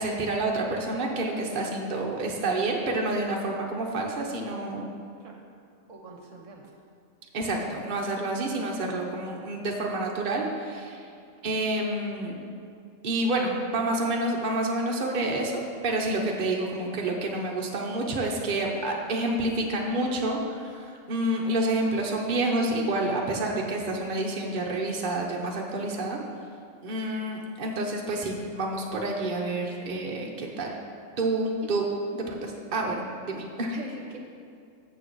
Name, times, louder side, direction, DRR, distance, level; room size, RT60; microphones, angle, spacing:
voice 1, 0.0-4.9 7.3-11.1 11.4-12.4 13.0-26.2 26.8-30.7 31.2-31.9 32.1-33.7, right 2 dB, 40° right, -1 dB, 1.0 m, -28 dB
voice 2, 5.9-6.7 31.5-31.6 33.7-34.2, right 2 dB, 65° right, 1 dB, 1.2 m, -43 dB
7.2 x 6.7 x 6.2 m, 2.3 s
omnidirectional pair, 1.5 m